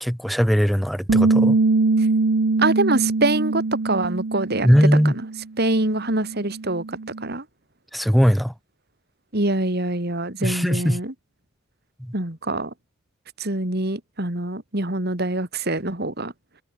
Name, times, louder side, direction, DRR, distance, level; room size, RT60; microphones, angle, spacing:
voice 1, 0.0-1.6 4.6-5.1 7.9-8.5 10.4-11.0 12.0-12.1, equal, ahead, 1.3 m, -19 dB
Bass guitar, 1.1-5.4 5.7-7.3, right 3 dB, 75° right, 0.8 m, -22 dB
voice 2, 2.6-4.7 5.0-5.2 5.6-7.4 9.3-11.1 12.1-12.7 13.4-16.3, right 2 dB, 50° right, 3.0 m, -25 dB
head